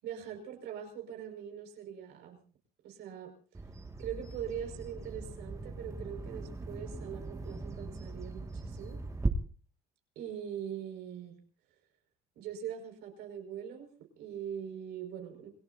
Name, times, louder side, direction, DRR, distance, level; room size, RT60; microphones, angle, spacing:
voice 1, 0.0-2.4 2.8-3.3 4.0-9.0 10.2-11.4 12.3-13.9 14.2-15.5, right 9 dB, 85° right, 3 dB, 5.4 m, -42 dB
Bird vocalization bird call bird song, 3.5-9.3, right 3 dB, 20° right, 2.0 m, -39 dB
28.0 x 18.0 x 2.7 m, 0.41 s
cardioid pair, 110°, 17 cm